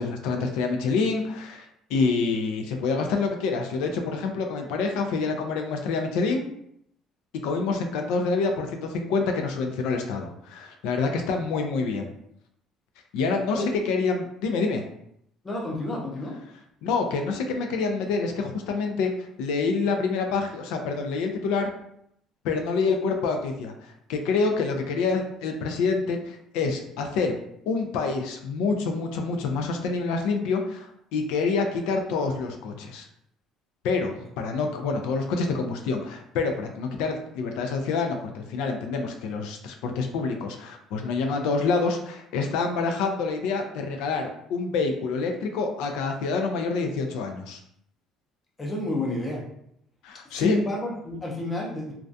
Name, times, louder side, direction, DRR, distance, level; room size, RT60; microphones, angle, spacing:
voice 1, 0.0-6.4 7.4-12.1 13.1-14.8 16.8-19.1 19.4-21.7 22.4-23.7 24.1-27.3 27.7-33.1 33.8-47.6 50.0-50.6, left 4 dB, 85° left, 4 dB, 0.3 m, -27 dB
voice 2, 15.4-16.4 48.6-49.4 50.3-51.9, left 1 dB, 15° left, -2 dB, 0.5 m, -30 dB
2.3 x 2.2 x 2.5 m, 0.74 s
cardioid pair, 170°, 0 cm